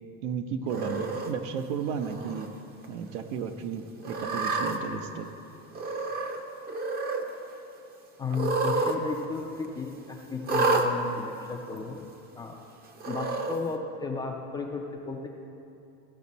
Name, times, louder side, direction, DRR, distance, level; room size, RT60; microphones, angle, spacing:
voice 1, 0.2-2.5 2.9-5.3, right 6 dB, 75° right, 7 dB, 0.8 m, -33 dB
Cat, 0.7-1.3 2.0-2.5 2.8-2.9 4.0-4.8 5.7-6.4 6.7-7.2 8.3-9.0 9.2-9.3 10.4-10.9 11.8-11.9 13.0-13.6, right 3 dB, 25° right, 0.6 m, -29 dB
voice 2, 8.2-12.1 12.3-12.6 13.1-15.3, left 4 dB, 10° left, 0 dB, 0.3 m, -34 dB
15.0 x 6.0 x 4.1 m, 2.7 s
cardioid pair, 150°, 36 cm